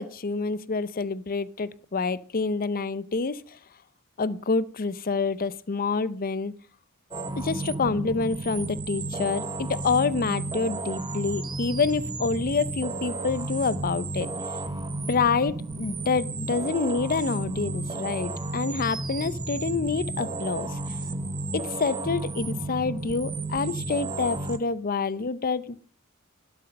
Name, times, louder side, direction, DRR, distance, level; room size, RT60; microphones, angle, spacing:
voice 1, 0.0-3.6 4.2-6.5 7.4-14.3 15.1-20.8 21.5-25.9, left 4 dB, 40° left, 17 dB, 0.7 m, -27 dB
sound 1, 7.1-24.6, right 2 dB, 20° right, 0.8 m, -33 dB
12.0 x 12.0 x 5.2 m, 0.41 s
head